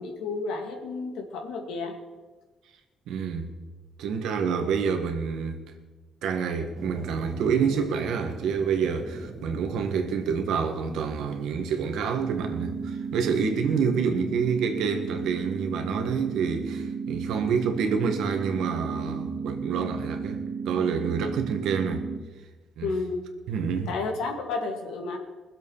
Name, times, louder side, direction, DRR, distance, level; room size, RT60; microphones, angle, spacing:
voice 1, 0.0-2.0 13.8-14.0 22.8-23.2 23.9-25.2, left 3 dB, 90° left, 2.3 m, -31 dB
voice 2, 3.1-3.5 4.0-5.6 6.2-22.1 22.8-22.9 23.5-23.9, right 6 dB, 85° right, 1.7 m, -28 dB
sound 1, 6.7-14.4, right 2 dB, 30° right, 1.5 m, -43 dB
sound 2, 12.2-22.2, right 5 dB, 65° right, 2.0 m, -33 dB
21.0 x 7.7 x 5.6 m
cardioid pair, 90°, 0 cm